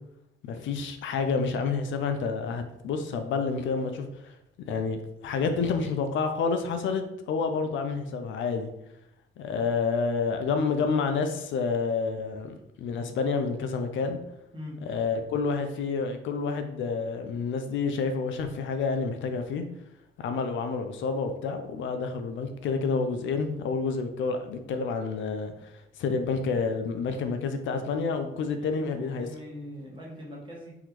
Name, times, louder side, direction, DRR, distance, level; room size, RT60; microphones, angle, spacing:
voice 1, 0.4-4.3 4.7-8.7 9.4-14.2 14.9-19.6 20.2-29.3, left 4 dB, 75° left, 7 dB, 0.5 m, -29 dB
voice 2, 28.6-30.8, equal, 25° right, -3 dB, 1.3 m, -42 dB
3.8 x 2.9 x 3.0 m, 0.82 s
cardioid pair, 90°, 20 cm